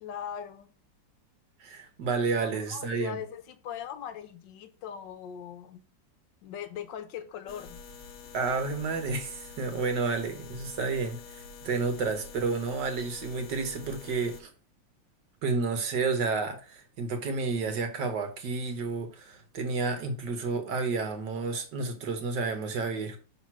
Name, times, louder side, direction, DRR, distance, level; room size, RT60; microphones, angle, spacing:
voice 1, 0.0-0.7 2.4-5.8 6.4-7.8, left 9 dB, 75° left, 1.3 m, -40 dB
voice 2, 1.6-3.2 8.3-14.5 15.4-23.2, right 4 dB, 65° right, 1.7 m, -31 dB
sound 1, 7.5-14.4, left 5 dB, 60° left, 1.1 m, -47 dB
5.8 x 3.8 x 6.1 m
omnidirectional pair, 2.1 m